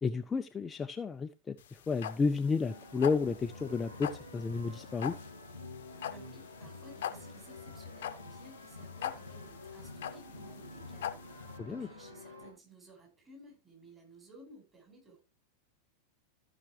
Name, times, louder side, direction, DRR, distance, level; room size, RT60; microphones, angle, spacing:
voice 1, 0.0-5.2 11.6-11.9, left 4 dB, 15° left, 0.4 m, -32 dB
sound 1, 1.6-11.6, left 10 dB, 60° left, 0.8 m, -42 dB
sound 2, 2.7-12.5, left 2 dB, 90° right, 2.9 m, -48 dB
voice 2, 6.1-15.2, right 1 dB, 20° right, 5.1 m, -57 dB
14.5 x 5.8 x 3.2 m
figure-of-eight pair, 90°, 0 cm